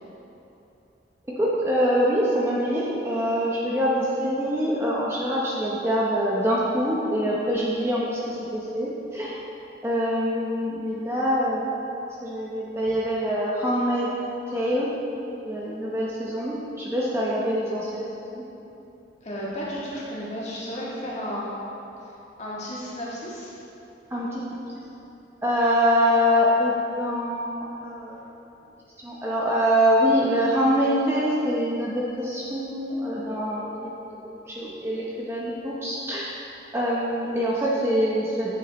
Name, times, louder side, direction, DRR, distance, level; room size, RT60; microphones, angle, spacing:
voice 1, 1.4-9.4 9.8-11.7 12.2-14.1 14.5-14.9 15.4-18.4 24.1-24.4 25.4-28.2 29.0-33.9 34.2-36.2 36.7-38.6, equal, 15° right, -6 dB, 0.8 m, -24 dB
voice 2, 19.2-21.5 22.4-23.5, equal, 40° left, -7 dB, 1.8 m, -33 dB
9.4 x 7.8 x 3.1 m, 2.9 s
head